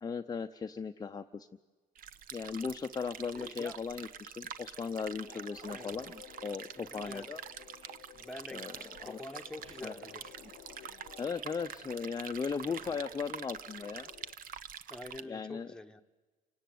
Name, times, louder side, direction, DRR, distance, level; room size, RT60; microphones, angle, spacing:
voice 1, 0.0-1.5 2.3-6.1 6.4-7.4 8.5-9.2 9.8-9.9 11.2-14.1 15.2-15.7, left 5 dB, 25° left, 5 dB, 0.7 m, -37 dB
sound 1, 2.0-15.2, right 8 dB, 55° right, 1.0 m, -46 dB
voice 2, 3.3-3.8 5.7-5.9 6.8-7.3 8.1-10.4 14.9-16.0, left 2 dB, 5° left, 5 dB, 1.2 m, -46 dB
sound 2, 4.8-14.4, left 13 dB, 70° left, 0.9 m, -55 dB
sound 3, 5.5-6.2 6.5-13.3, right 4 dB, 35° right, 1.2 m, -58 dB
28.5 x 18.0 x 9.4 m, 1.4 s
cardioid pair, 110°, 17 cm